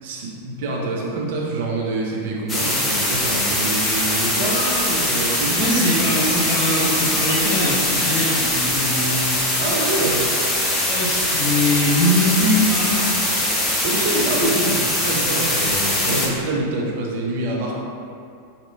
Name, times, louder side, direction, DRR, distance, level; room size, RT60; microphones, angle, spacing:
voice 1, 0.0-6.2 9.6-10.3 13.8-17.7, right 2 dB, 50° right, -2 dB, 0.6 m, -26 dB
sound 1, 2.5-16.3, left 1 dB, 15° left, 0.7 m, -22 dB
voice 2, 5.6-9.4 10.8-13.0 15.9-16.2, left 1 dB, 50° left, -7 dB, 1.2 m, -22 dB
4.8 x 2.8 x 2.3 m, 2.4 s
figure-of-eight pair, 90°, 0 cm